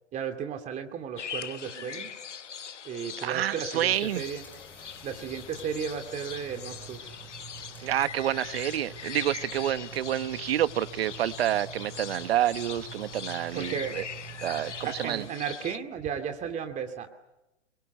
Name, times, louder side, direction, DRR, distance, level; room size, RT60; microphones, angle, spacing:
voice 1, 0.1-2.1 2.8-4.4 5.0-7.0 13.5-14.0 14.8-17.1, right 7 dB, 20° right, 7 dB, 2.3 m, -34 dB
sound 1, 1.2-15.8, left 8 dB, 75° left, 1.2 m, -41 dB
voice 2, 3.2-4.2 7.8-14.0 14.4-15.3, right 11 dB, 55° right, 14 dB, 1.3 m, -28 dB
sound 2, 3.9-15.3, right 6 dB, 5° left, 7.7 m, -47 dB
28.5 x 23.5 x 8.2 m, 0.94 s
figure-of-eight pair, 120°, 36 cm